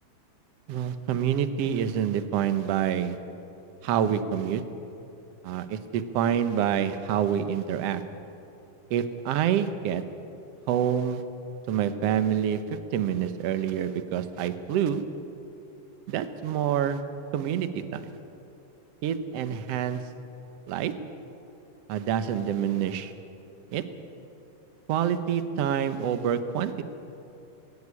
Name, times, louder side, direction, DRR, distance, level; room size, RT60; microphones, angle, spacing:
voice 1, 0.7-3.2 3.8-4.6 5.4-8.0 8.9-10.0 10.7-11.2 11.7-12.6 12.9-15.0 16.1-17.0 17.3-18.1 19.0-20.0 20.7-20.9 21.9-23.1 23.7-23.8 24.9-26.8, right 9 dB, 65° right, 10 dB, 1.6 m, -27 dB
20.0 x 16.5 x 9.7 m, 2.8 s
omnidirectional pair, 3.9 m